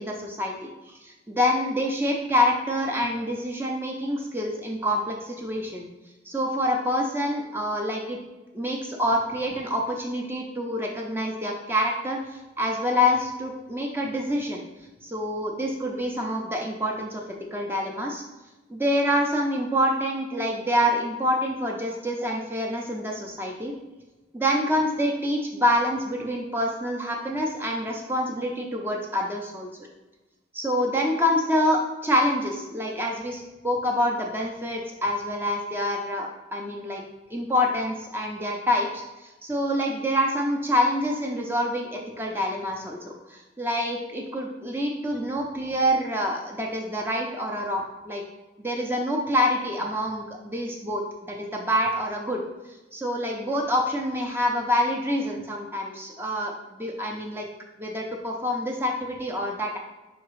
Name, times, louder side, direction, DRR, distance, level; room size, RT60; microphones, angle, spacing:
voice 1, 0.0-5.9 6.3-8.2 8.5-12.2 12.6-14.6 15.0-17.2 17.5-18.2 18.7-23.7 24.3-29.7 30.5-37.0 37.3-48.2 48.6-52.4 52.9-57.5 57.8-59.8, equal, 10° right, 0 dB, 0.5 m, -26 dB
4.8 x 3.5 x 3.1 m, 1.1 s
head